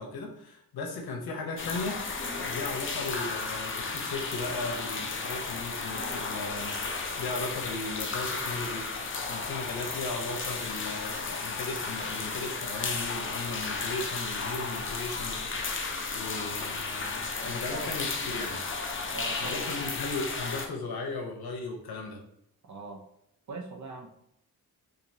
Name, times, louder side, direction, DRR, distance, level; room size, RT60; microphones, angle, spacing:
voice 1, 0.0-2.0 2.3-8.9 9.3-18.6 19.4-22.2, left 3 dB, 85° left, 1 dB, 0.9 m, -37 dB
sound 1, 1.6-20.7, left 4 dB, 35° left, 0.5 m, -34 dB
voice 2, 19.1-19.8 22.6-23.1 23.5-24.2, right 3 dB, 50° right, 5 dB, 0.6 m, -41 dB
4.3 x 2.7 x 2.7 m, 0.78 s
wide cardioid pair, 105°, 36 cm